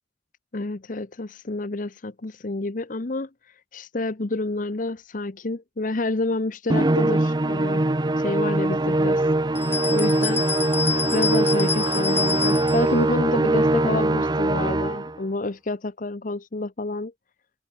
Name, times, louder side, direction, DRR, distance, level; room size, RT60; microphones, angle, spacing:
voice 1, 0.5-7.9 8.2-9.3 9.6-10.4 11.1-17.1, left 2 dB, 50° left, 0.8 m, -29 dB
Musical instrument, 6.7-15.2, right 2 dB, 25° right, 0.7 m, -22 dB
sound 1, 9.5-12.9, left 4 dB, 15° left, 0.5 m, -28 dB
head